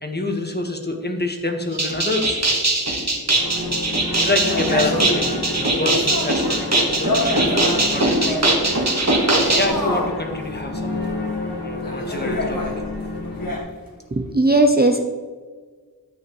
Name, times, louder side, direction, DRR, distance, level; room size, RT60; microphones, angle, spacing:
voice 1, 0.0-2.4 3.8-5.3 5.6-11.1 11.6-12.6, left 2 dB, 25° left, 3 dB, 1.4 m, -27 dB
sound 1, 1.7-9.7, right 2 dB, 45° right, 1.6 m, -21 dB
sound 2, 3.4-13.6, left 2 dB, 80° left, 1.7 m, -30 dB
sound 3, 4.4-8.6 9.1-10.2 10.9-11.1 11.8-12.8 13.4-13.7, left 1 dB, 60° left, 1.5 m, -27 dB
voice 2, 14.1-15.0, right 2 dB, 25° right, 4 dB, 0.7 m, -17 dB
10.5 x 8.4 x 3.2 m, 1.5 s
wide cardioid pair, 50°, 38 cm